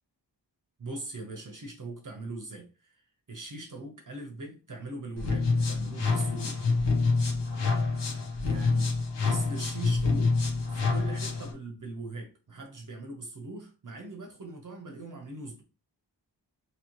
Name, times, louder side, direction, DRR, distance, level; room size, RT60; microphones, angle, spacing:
voice 1, 0.8-3.0 3.3-6.7 8.4-15.6, right 2 dB, 45° right, 0.8 m, -41 dB
sound 1, 5.2-11.5, left 4 dB, 80° left, 0.9 m, -27 dB
3.0 x 2.8 x 2.9 m
wide cardioid pair, 95°, 42 cm